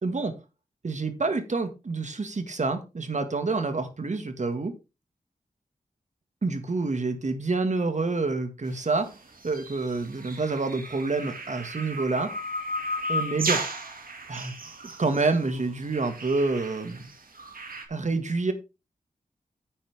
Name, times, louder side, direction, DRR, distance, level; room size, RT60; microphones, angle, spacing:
voice 1, 0.0-0.3 0.8-4.7 6.4-9.2 9.4-12.3 13.1-13.6 14.3-14.7 15.0-17.1 17.9-18.5, right 3 dB, 55° right, 8 dB, 2.0 m, -28 dB
sound 1, 9.4-17.8, right 1 dB, 75° right, 2.3 m, -34 dB
10.0 x 8.4 x 3.6 m, 0.28 s
wide cardioid pair, 90°, 15 cm